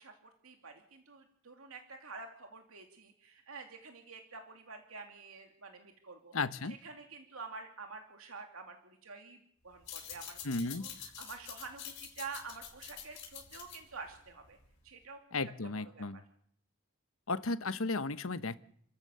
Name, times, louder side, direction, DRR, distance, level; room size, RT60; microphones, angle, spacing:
voice 1, 0.0-6.3 6.6-10.4 10.8-14.6 14.8-16.2, right 4 dB, 80° right, 4 dB, 2.5 m, -48 dB
voice 2, 6.3-6.8 10.4-10.8 15.3-16.2 17.3-18.6, left 3 dB, 75° left, 13 dB, 1.1 m, -34 dB
sound 1, 9.7-14.9, left 9 dB, 55° left, 6.6 m, -47 dB
29.0 x 14.5 x 6.9 m, 0.65 s
head